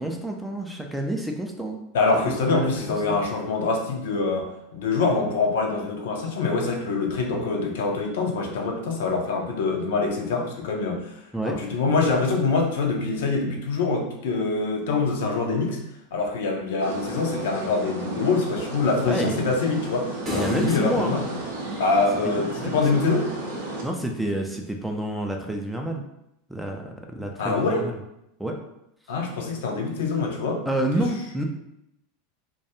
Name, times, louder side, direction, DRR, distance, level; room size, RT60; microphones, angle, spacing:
voice 1, 0.0-1.8 2.2-3.2 11.3-11.6 19.1-19.5 20.3-21.2 22.2-23.2 23.8-26.1 26.5-28.0 28.4-28.6 30.7-31.4, right 1 dB, 5° right, 2 dB, 0.4 m, -29 dB
voice 2, 1.9-11.1 11.5-15.8 16.1-21.2 21.8-23.3 27.4-27.9 29.1-30.6, left 4 dB, 60° left, 1 dB, 0.5 m, -25 dB
sound 1, 16.8-23.8, right 2 dB, 65° right, 0.6 m, -34 dB
sound 2, 20.3-22.7, equal, 30° right, 0.9 m, -33 dB
2.3 x 2.2 x 2.9 m, 0.82 s
figure-of-eight pair, 85°, 0 cm